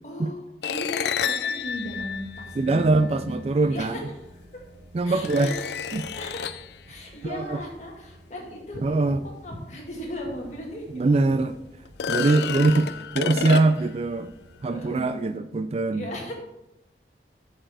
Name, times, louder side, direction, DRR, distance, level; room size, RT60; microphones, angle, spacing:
voice 1, 0.0-3.4 3.7-4.0 5.0-5.6 5.8-6.6 6.9-9.2 9.4-11.4 12.2-12.3 12.7-13.6 14.7-15.3 15.9-16.3, left 1 dB, 40° left, -1 dB, 2.2 m, -37 dB
sound 1, 0.6-3.1 4.3-4.4 5.2-6.7 10.0-10.1 10.6-10.7 11.9-14.0, left 7 dB, 65° left, 0.4 m, -30 dB
sound 2, 1.6-14.9, right 1 dB, 55° right, 1.5 m, -50 dB
voice 2, 2.6-3.9 4.9-5.5 5.9-6.1 7.3-7.6 8.8-9.2 10.9-11.5 12.1-14.3 14.6-16.1, right 3 dB, 35° right, 12 dB, 0.3 m, -22 dB
7.7 x 6.7 x 4.8 m, 0.91 s
head